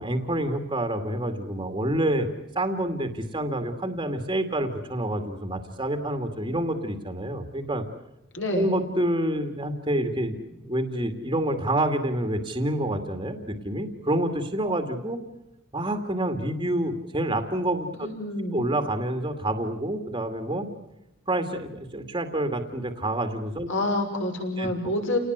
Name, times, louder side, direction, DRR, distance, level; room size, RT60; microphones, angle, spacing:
voice 1, 0.0-2.3 2.6-7.8 8.5-15.2 15.7-18.1 18.5-20.7 21.3-23.7 24.6-24.9, right 1 dB, 20° right, 7 dB, 2.2 m, -28 dB
voice 2, 8.3-8.7 18.0-18.6 23.7-25.2, left 1 dB, 55° left, 3 dB, 6.1 m, -27 dB
30.0 x 19.0 x 8.1 m, 0.88 s
head